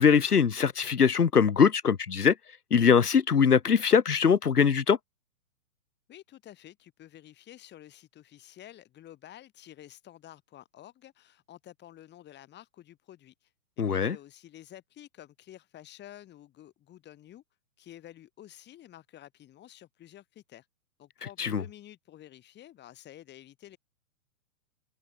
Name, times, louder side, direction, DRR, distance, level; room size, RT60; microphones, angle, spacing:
voice 1, 0.0-2.3 2.7-5.0 13.8-14.2 21.4-21.6, left 6 dB, 90° left, 1.9 m, -22 dB
voice 2, 6.1-17.4 17.8-20.7 21.0-23.8, left 12 dB, 25° left, 7.3 m, -51 dB
hypercardioid pair, 125°, 45 cm